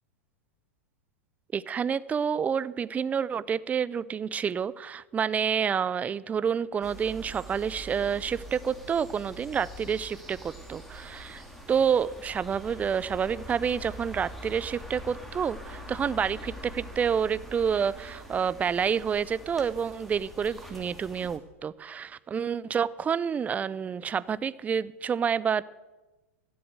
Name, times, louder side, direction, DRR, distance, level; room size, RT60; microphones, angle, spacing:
voice 1, 1.5-25.6, right 7 dB, 20° right, 19 dB, 0.5 m, -28 dB
sound 1, 6.8-21.4, equal, 5° left, 2.7 m, -44 dB
13.5 x 7.8 x 7.9 m, 1.1 s
hypercardioid pair, 100°, 8 cm